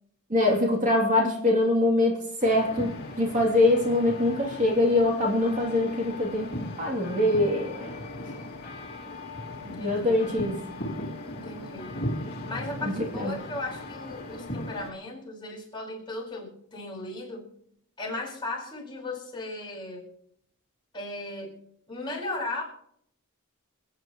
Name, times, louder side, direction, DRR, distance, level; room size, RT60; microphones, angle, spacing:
voice 1, 0.3-6.5 6.8-7.9 9.8-10.6 12.8-13.3, left 2 dB, 35° right, -1 dB, 2.9 m, -24 dB
sound 1, 2.4-14.9, left 1 dB, 45° left, 2.4 m, -37 dB
voice 2, 9.6-10.1 11.3-12.0 12.4-17.5 18.0-20.1 20.9-21.6 21.9-22.6, left 2 dB, 20° left, -3 dB, 4.9 m, -36 dB
28.5 x 9.5 x 3.1 m, 0.70 s
head